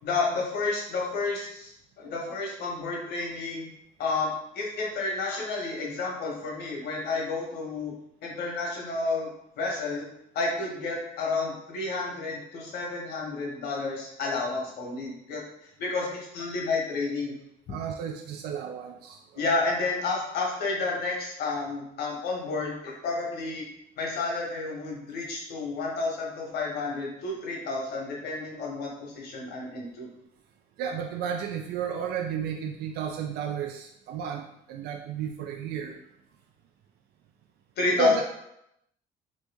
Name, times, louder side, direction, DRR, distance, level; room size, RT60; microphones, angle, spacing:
voice 1, 0.0-1.7 2.0-3.7 4.0-7.9 8.2-9.3 9.6-10.1 10.3-15.4 15.8-17.3 19.3-23.6 24.0-30.1 37.8-38.2, left 3 dB, 75° left, -1 dB, 1.1 m, -30 dB
voice 2, 17.7-19.4 30.8-36.0 37.9-38.2, right 7 dB, 75° right, 3 dB, 0.4 m, -32 dB
3.1 x 2.7 x 3.4 m, 0.78 s
cardioid pair, 110°, 17 cm